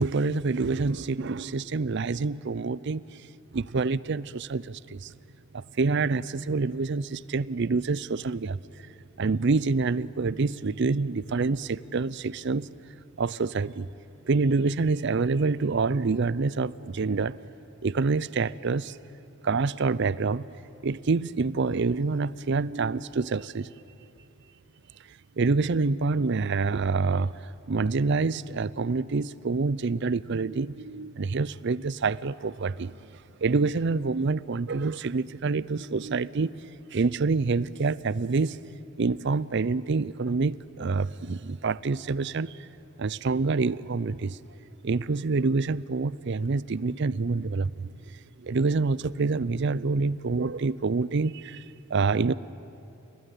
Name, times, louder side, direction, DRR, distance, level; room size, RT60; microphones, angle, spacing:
voice 1, 0.0-3.2 3.5-5.1 5.5-8.6 9.2-12.7 13.2-13.9 14.3-17.4 17.8-19.0 19.4-20.5 20.8-23.7 25.4-27.3 27.7-33.0 33.4-36.5 36.9-38.6 39.0-42.7 43.0-44.4 44.8-47.9 48.4-51.6 51.9-52.3, right 4 dB, 55° right, 19 dB, 0.5 m, -27 dB
30.0 x 20.0 x 9.2 m, 2.8 s
head